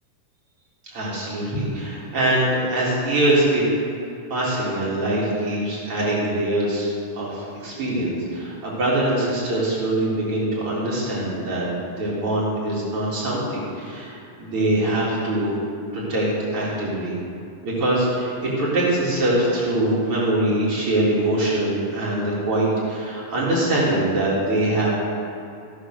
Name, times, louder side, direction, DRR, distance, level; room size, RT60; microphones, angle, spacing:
voice 1, 0.9-3.6 4.3-11.7 12.0-15.5 15.9-17.2 17.6-24.9, right 1 dB, 40° right, -7 dB, 4.4 m, -23 dB
16.0 x 9.1 x 6.5 m, 2.6 s
omnidirectional pair, 4.0 m